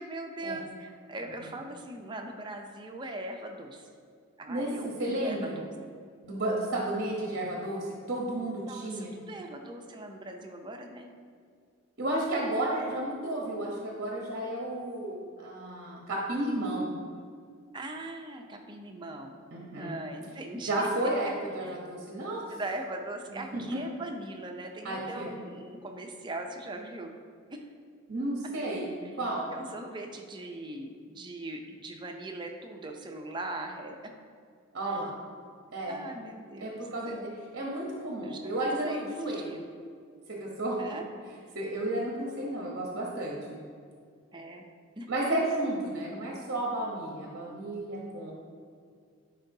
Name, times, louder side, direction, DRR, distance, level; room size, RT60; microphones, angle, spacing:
voice 1, 0.0-3.9 4.4-5.7 8.6-11.1 17.7-19.4 19.8-21.1 21.6-21.8 22.5-27.1 27.5-27.7 29.0-29.1 29.5-34.1 34.9-35.0 35.9-37.2 38.2-39.6 40.8-41.1 44.3-44.6 45.0-45.1, right 2 dB, 20° right, 3 dB, 0.5 m, -40 dB
voice 2, 5.0-5.6 6.2-9.1 12.0-16.9 19.5-20.0 20.7-22.6 23.3-23.8 24.8-25.3 28.1-28.9 29.2-29.5 34.7-35.1 35.7-36.0 36.6-37.3 37.5-39.5 40.4-40.8 41.5-43.6 45.1-48.3, right 1 dB, 50° right, -3 dB, 0.9 m, -32 dB
10.5 x 4.5 x 2.7 m, 2.2 s
head